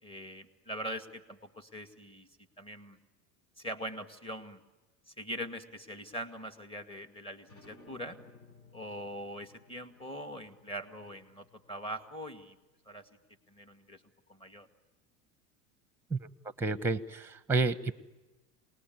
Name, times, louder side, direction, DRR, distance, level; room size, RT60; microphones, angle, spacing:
voice 1, 0.0-2.3 2.6-3.0 3.6-4.6 5.1-8.2 8.7-12.6 12.9-13.1 13.5-14.0 14.3-14.7, equal, 15° left, 8 dB, 2.2 m, -42 dB
sound 1, 7.4-12.7, left 3 dB, 55° left, 6.8 m, -59 dB
voice 2, 16.6-17.9, right 3 dB, 5° right, 14 dB, 1.1 m, -30 dB
27.5 x 20.0 x 9.5 m, 1.1 s
supercardioid pair, 100°, 39 cm